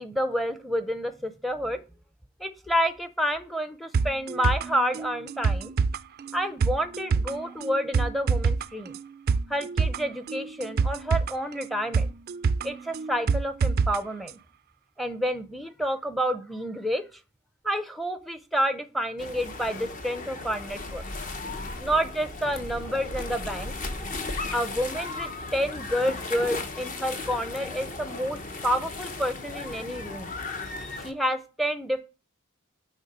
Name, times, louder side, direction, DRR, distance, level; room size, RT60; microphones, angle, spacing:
voice 1, 0.0-1.8 2.4-5.7 6.3-9.0 9.5-12.1 12.6-14.4 15.0-17.2 17.6-21.0 21.8-23.7 24.5-30.3 31.0-32.0, equal, ahead, 10 dB, 0.6 m, -29 dB
sound 1, 3.9-14.0 14.3-14.4, right 5 dB, 45° right, 0.3 m, -27 dB
sound 2, 19.2-31.1, left 3 dB, 40° left, 0.8 m, -36 dB
8.9 x 3.7 x 4.2 m, 0.32 s
head